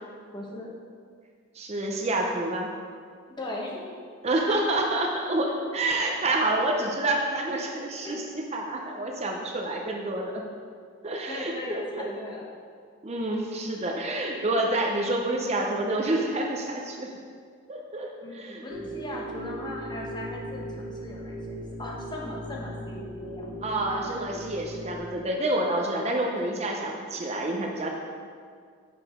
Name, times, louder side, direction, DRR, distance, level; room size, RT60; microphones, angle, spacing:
voice 1, 0.3-0.7 3.4-3.9 8.0-8.2 11.3-12.4 18.2-23.5 26.1-26.3, left 2 dB, 25° left, -2 dB, 0.9 m, -38 dB
voice 2, 1.5-2.7 4.2-10.4 11.0-12.1 13.0-17.1 17.7-18.6 23.6-27.9, right 1 dB, 35° right, 0 dB, 0.6 m, -28 dB
sound 1, 18.7-25.0, right 1 dB, 65° right, 1.4 m, -38 dB
6.2 x 4.8 x 4.9 m, 2.1 s
head